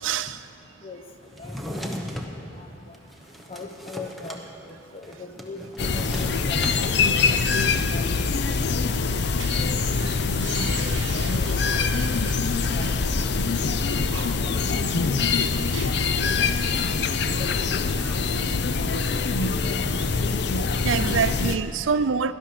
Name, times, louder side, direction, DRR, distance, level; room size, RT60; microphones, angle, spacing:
voice 1, 0.0-0.4 11.4-11.6 14.1-14.4 15.7-15.8 20.8-22.3, right 6 dB, 90° right, 0.5 m, -26 dB
Drawer open or close, 1.3-2.4 2.9-4.4 4.7-4.8 5.0-6.8, equal, ahead, 1.0 m, -34 dB
voice 2, 1.4-2.0 2.3-2.7 3.5-7.4 7.9-8.1 8.6-8.8 9.3-9.4 10.6-10.9 11.4-11.9 12.2-12.4 12.7-13.8 14.4-15.4 17.2-18.4 18.7-19.4 19.6-19.8, left 2 dB, 30° left, 0.8 m, -41 dB
sound 1, 5.8-21.5, left 4 dB, 60° left, 0.5 m, -24 dB
sound 2, 9.4-14.8, right 5 dB, 70° right, 0.9 m, -40 dB
17.0 x 12.0 x 5.0 m
head